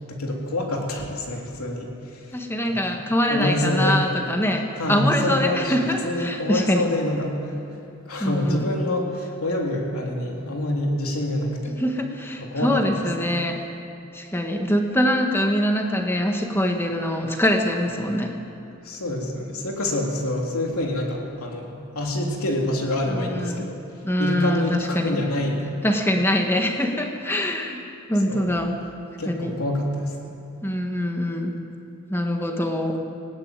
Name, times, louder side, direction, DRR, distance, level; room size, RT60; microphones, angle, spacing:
voice 1, 0.1-2.4 2.8-3.0 3.3-4.0 4.8-7.4 8.1-11.7 12.4-13.3 18.8-23.8 24.2-25.7 28.3-28.5 29.2-30.4, left 1 dB, 80° left, 0 dB, 3.3 m, -26 dB
voice 2, 2.3-6.9 8.2-8.7 11.7-13.6 14.1-18.3 23.1-23.8 24.0-25.2 25.8-27.8 28.1-28.8 29.2-29.6 30.6-31.5 32.1-33.0, equal, 10° left, 3 dB, 1.6 m, -24 dB
19.0 x 17.0 x 9.1 m, 2.8 s
head